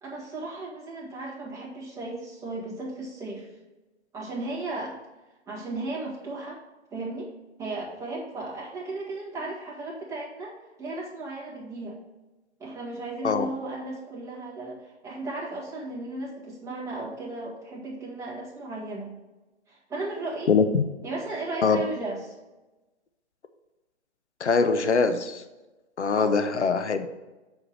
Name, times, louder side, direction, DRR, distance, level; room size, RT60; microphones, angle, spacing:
voice 1, 0.0-3.5 4.1-5.0 5.5-6.6 6.9-7.3 7.6-12.0 12.6-19.1 19.7-20.5 21.0-22.3 26.1-26.5, right 2 dB, 10° right, -5 dB, 1.8 m, -35 dB
voice 2, 20.5-20.9 21.6-21.8 24.4-25.4 26.0-27.1, left 5 dB, 85° left, 9 dB, 0.8 m, -23 dB
7.1 x 4.8 x 5.2 m, 1.1 s
figure-of-eight pair, 135°, 34 cm